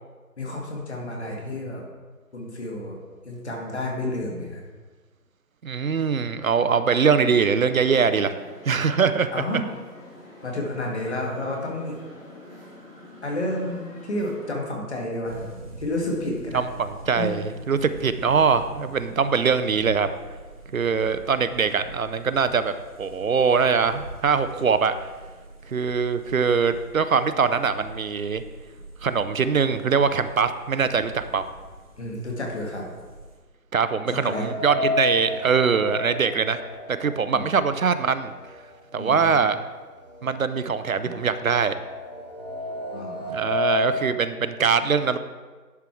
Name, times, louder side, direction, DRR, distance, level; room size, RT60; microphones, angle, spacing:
voice 1, 0.4-1.8 2.3-3.0 3.2-4.6 9.3-9.7 10.4-12.0 13.2-15.5 15.8-16.6 17.2-17.5 32.0-32.8 34.1-34.4 37.3-37.5 39.0-39.4 41.0-41.2 42.9-43.4, left 1 dB, 45° left, -1 dB, 2.0 m, -30 dB
voice 2, 5.6-8.3 8.6-9.3 16.5-20.1 20.7-24.9 25.7-28.4 29.0-31.5 33.7-36.6 36.9-38.3 38.9-39.6 40.2-41.8 43.3-45.2, right 5 dB, 60° right, 11 dB, 0.6 m, -22 dB
sound 1, 7.1-14.5, left 1 dB, 10° left, 1.3 m, -46 dB
sound 2, 15.2-33.4, right 1 dB, 25° right, 0.9 m, -44 dB
sound 3, 34.3-38.3 38.7-38.8 39.8-39.9 40.2-44.1, left 1 dB, 25° left, 0.8 m, -31 dB
11.0 x 4.7 x 4.6 m, 1.4 s
figure-of-eight pair, 160°, 47 cm